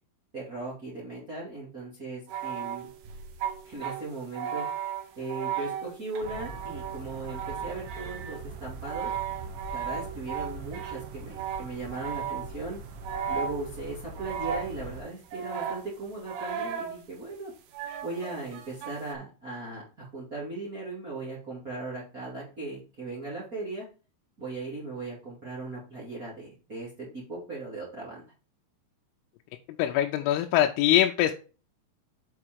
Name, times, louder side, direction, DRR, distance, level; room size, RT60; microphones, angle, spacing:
voice 1, 0.3-2.9 3.6-4.7 5.1-9.1 9.7-12.8 13.3-17.5 18.0-23.8 24.4-28.2, right 3 dB, 30° right, -5 dB, 1.5 m, -38 dB
sound 1, 2.3-12.6 13.0-13.9 14.2-15.0 15.3-17.0 17.7-19.1, right 8 dB, 90° right, 2.2 m, -36 dB
sound 2, 6.2-15.0, right 2 dB, 75° right, 3.0 m, -42 dB
voice 2, 29.8-31.3, left 12 dB, 80° left, 3 dB, 3.1 m, -23 dB
7.9 x 4.9 x 4.5 m, 0.34 s
omnidirectional pair, 5.9 m